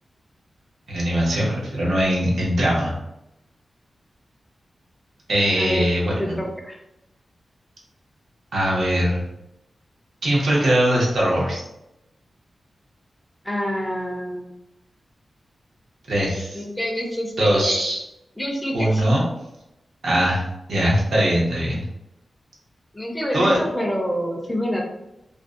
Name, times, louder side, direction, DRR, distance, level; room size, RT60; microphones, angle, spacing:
voice 1, 0.9-2.9 5.3-6.4 8.5-9.2 10.2-11.6 16.1-16.6 17.4-18.0 18.7-19.2 20.0-20.4 20.7-21.8 23.3-23.6, equal, 75° right, -4 dB, 0.8 m, -21 dB
voice 2, 6.2-6.8 13.4-14.5 16.5-17.8 18.4-19.0 22.9-24.8, equal, 5° left, 0 dB, 0.4 m, -27 dB
2.5 x 2.0 x 2.4 m, 0.87 s
wide cardioid pair, 170°, 0 cm